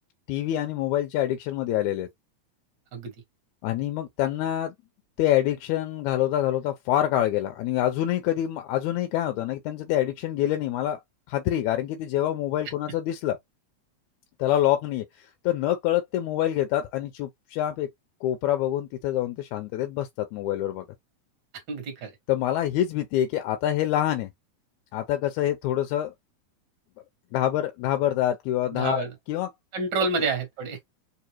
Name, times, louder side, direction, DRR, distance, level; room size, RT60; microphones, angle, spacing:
voice 1, 0.3-2.1 3.6-4.7 5.2-11.0 11.3-13.4 14.4-17.9 18.2-20.9 22.3-24.3 24.9-26.1 27.3-29.5, left 12 dB, 80° left, 1.9 m, -26 dB
voice 2, 21.7-22.1 28.7-29.1 29.7-30.8, right 4 dB, 50° right, 1.6 m, -28 dB
4.8 x 2.5 x 2.9 m
omnidirectional pair, 3.3 m